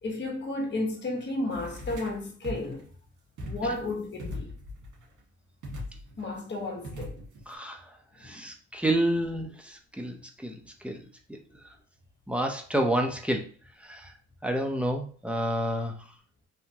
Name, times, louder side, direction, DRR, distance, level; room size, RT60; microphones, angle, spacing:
voice 1, 0.0-2.9 3.4-4.5 6.2-7.2 8.2-8.5, left 2 dB, 35° left, 1.3 m, -33 dB
sound 1, 1.5-2.2 2.4-2.8 3.4-3.9 4.2-5.0 5.6-6.2 6.8-7.5, left 1 dB, 80° right, 1.7 m, -39 dB
voice 2, 7.5-7.8 8.2-10.1 10.4-10.6 10.8-11.0 11.3-11.4 12.3-13.4 13.9-14.1 14.4-16.0, right 1 dB, 5° right, 0.7 m, -29 dB
3.5 x 2.8 x 2.9 m
cardioid pair, 90°, 30 cm